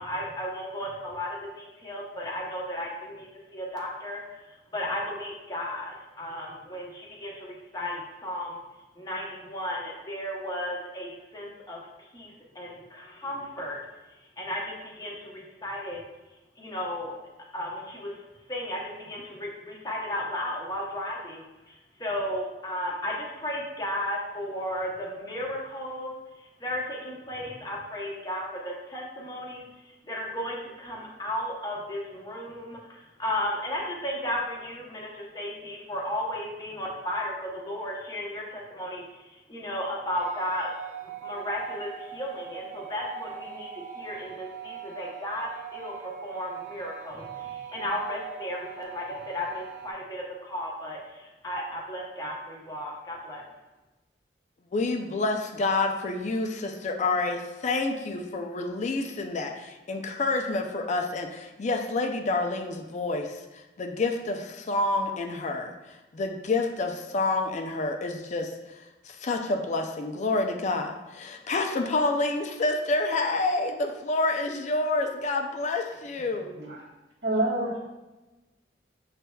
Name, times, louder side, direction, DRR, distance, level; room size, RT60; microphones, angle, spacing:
voice 1, 0.0-3.3 3.5-8.6 8.9-13.8 14.4-16.0 16.6-17.1 17.5-18.2 18.5-40.7 41.0-53.4, left 1 dB, 20° left, -2 dB, 0.9 m, -34 dB
sound 1, 40.2-49.9, right 8 dB, 50° right, 0.4 m, -41 dB
voice 2, 54.7-63.3 63.8-65.7 66.1-68.5 69.2-76.5, left 2 dB, 45° left, 4 dB, 0.4 m, -28 dB
voice 3, 77.2-77.8, right 2 dB, 85° right, -5 dB, 1.4 m, -27 dB
6.7 x 3.3 x 2.3 m, 1.1 s
head